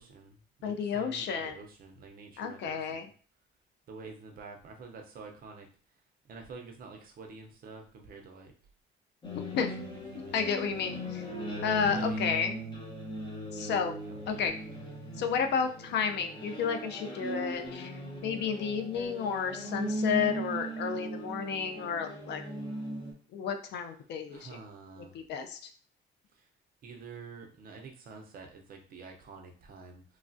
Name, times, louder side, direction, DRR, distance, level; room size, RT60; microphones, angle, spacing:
voice 1, 0.0-3.1 3.9-5.7 6.3-8.5 9.5-11.0 11.8-12.2 14.1-14.4 24.3-25.2 26.8-30.0, right 4 dB, 50° right, 2 dB, 0.6 m, -48 dB
voice 2, 0.6-1.6 2.4-3.1 9.5-9.7 10.3-11.2 11.6-12.6 13.5-13.9 14.3-14.5 15.2-17.9 18.2-22.4 23.3-24.5 25.1-25.6, left 6 dB, 65° left, 6 dB, 0.4 m, -31 dB
sound 1, 9.2-23.1, equal, 25° left, 0.9 m, -38 dB
3.1 x 2.3 x 2.6 m, 0.41 s
cardioid pair, 135°, 20 cm